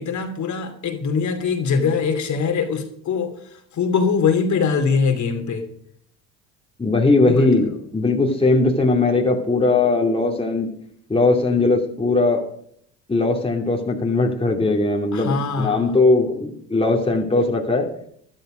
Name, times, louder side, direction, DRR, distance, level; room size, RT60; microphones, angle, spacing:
voice 1, 0.0-5.6 7.2-7.5 15.1-15.9, left 5 dB, 50° left, 4 dB, 2.9 m, -22 dB
voice 2, 6.8-10.7 11.1-12.4 13.1-17.9, left 3 dB, 15° left, 0 dB, 2.8 m, -19 dB
13.0 x 12.0 x 5.1 m, 0.65 s
supercardioid pair, 75°, 37 cm